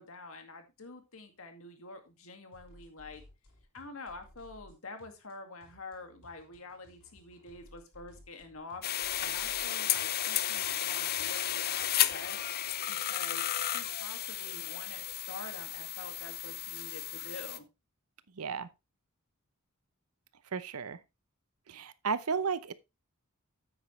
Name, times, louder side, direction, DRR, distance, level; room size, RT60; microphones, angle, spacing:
voice 1, 0.0-3.2 3.7-12.4 12.9-17.7, left 3 dB, 65° left, 2.1 m, -47 dB
sound 1, 2.5-12.4, left 1 dB, 85° left, 6.2 m, -59 dB
sound 2, 8.8-17.6, left 12 dB, 45° left, 0.6 m, -33 dB
voice 2, 18.4-18.7 20.5-21.0 21.7-22.7, right 5 dB, 80° right, 0.8 m, -33 dB
9.0 x 8.9 x 3.2 m
head